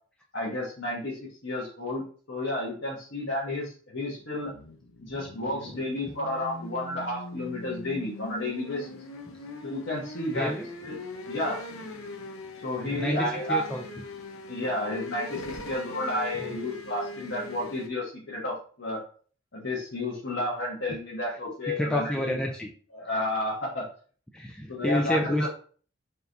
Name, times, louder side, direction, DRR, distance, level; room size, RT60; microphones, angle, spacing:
voice 1, 0.3-4.5 5.0-9.0 9.6-10.5 10.8-10.9 11.3-11.6 12.6-13.6 14.5-19.0 19.5-22.4 22.9-23.9 24.7-25.5, left 1 dB, 60° left, -6 dB, 1.2 m, -31 dB
sound 1, 4.2-17.9, left 3 dB, 90° left, 0.7 m, -41 dB
voice 2, 10.3-10.7 12.9-13.8 16.4-16.5 21.7-22.7 23.1-23.2 24.3-25.5, left 1 dB, 5° left, 0 dB, 0.3 m, -29 dB
4.5 x 2.6 x 3.3 m, 0.43 s
head